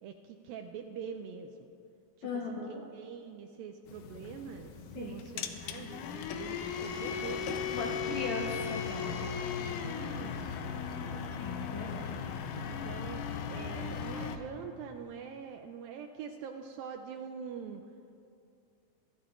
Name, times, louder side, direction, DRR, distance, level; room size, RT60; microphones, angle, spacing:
voice 1, 0.0-1.7 2.2-5.9 6.4-8.2 9.5-11.3 12.7-17.8, right 7 dB, 85° right, 5 dB, 2.1 m, -45 dB
voice 2, 2.2-2.8 4.9-5.1 7.7-9.3 11.4-12.2, left 4 dB, 65° left, -2 dB, 1.9 m, -38 dB
sound 1, 3.9-14.4, left 6 dB, 80° left, 2.0 m, -37 dB
sound 2, 5.2-8.4, right 3 dB, 65° right, 2.4 m, -53 dB
25.5 x 13.0 x 2.5 m, 2.5 s
omnidirectional pair, 4.5 m